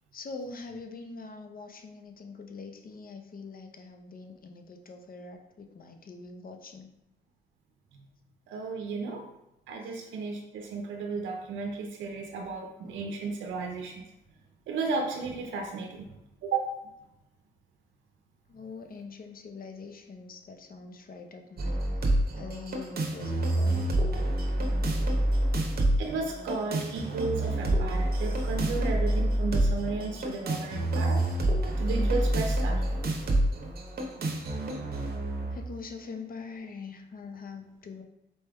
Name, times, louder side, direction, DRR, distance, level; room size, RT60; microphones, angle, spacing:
voice 1, 0.1-6.9 9.9-10.0 18.5-21.8 22.3-23.9 35.5-38.0, left 4 dB, 50° left, 6 dB, 0.6 m, -43 dB
voice 2, 8.5-9.2 9.7-14.1 14.7-16.1 16.4-16.8 24.6-25.0 26.0-31.2 31.8-33.0, right 4 dB, 90° right, 2 dB, 0.5 m, -34 dB
sound 1, 21.6-35.6, right 1 dB, 55° right, 0.9 m, -28 dB
4.2 x 3.3 x 3.4 m, 0.89 s
cardioid pair, 65°, 19 cm